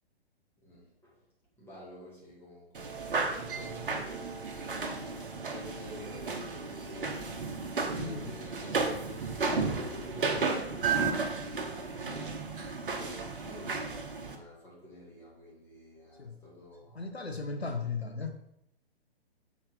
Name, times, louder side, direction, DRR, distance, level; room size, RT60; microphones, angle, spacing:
voice 1, 0.6-1.1 1.6-4.9 5.5-12.5 12.9-17.1, equal, 5° left, -7 dB, 2.4 m, -49 dB
sound 1, 2.8-14.4, right 4 dB, 60° right, 1.2 m, -33 dB
voice 2, 8.0-8.4 16.2-16.4 16.9-18.4, left 4 dB, 80° left, 5 dB, 1.0 m, -36 dB
6.1 x 4.3 x 5.5 m, 0.75 s
figure-of-eight pair, 125°, 31 cm